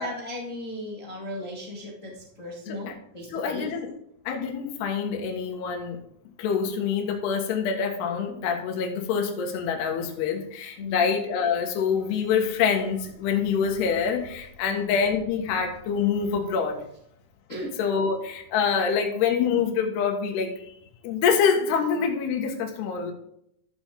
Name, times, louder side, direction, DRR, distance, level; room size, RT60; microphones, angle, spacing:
voice 1, 0.0-3.7 10.8-11.0 14.7-15.0 17.5-17.7, left 1 dB, 45° left, -3 dB, 0.9 m, -36 dB
voice 2, 3.3-3.9 4.3-6.0 6.4-16.8 17.8-20.6 21.0-23.1, left 6 dB, 75° left, 2 dB, 3.4 m, -26 dB
13.0 x 7.1 x 3.6 m, 0.73 s
omnidirectional pair, 5.0 m